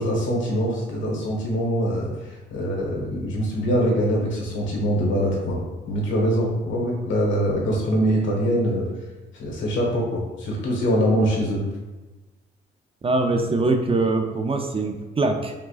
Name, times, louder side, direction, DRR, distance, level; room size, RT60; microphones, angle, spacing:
voice 1, 0.0-8.9 9.4-11.6, equal, 70° left, -2 dB, 1.3 m, -23 dB
voice 2, 13.0-15.5, right 3 dB, 30° right, 4 dB, 0.5 m, -23 dB
4.8 x 3.7 x 2.4 m, 1.1 s
cardioid pair, 90°, 20 cm